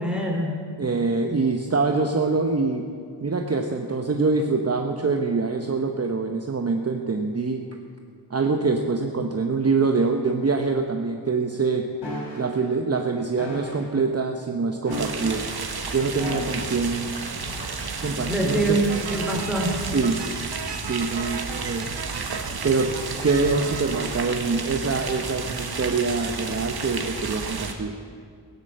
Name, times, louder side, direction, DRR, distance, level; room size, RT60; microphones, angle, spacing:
voice 1, 0.0-0.6 18.3-19.8 20.8-20.9, right 1 dB, ahead, 0 dB, 2.9 m, -25 dB
voice 2, 0.8-2.8 3.2-7.6 8.3-11.9 12.4-15.4 15.9-17.1 18.0-18.8 19.9-20.2 20.8-22.2 22.6-27.9, right 4 dB, 35° right, 3 dB, 0.9 m, -24 dB
sound 1, 12.0-12.5 13.4-13.9 14.8-15.5 16.2-16.8 17.5-17.7, equal, 80° left, 3.6 m, -34 dB
sound 2, 14.9-27.7, right 4 dB, 65° right, 1.6 m, -32 dB
sound 3, 18.9-24.0, right 6 dB, 85° right, 1.0 m, -36 dB
18.0 x 10.0 x 7.5 m, 2.2 s
wide cardioid pair, 120°, 41 cm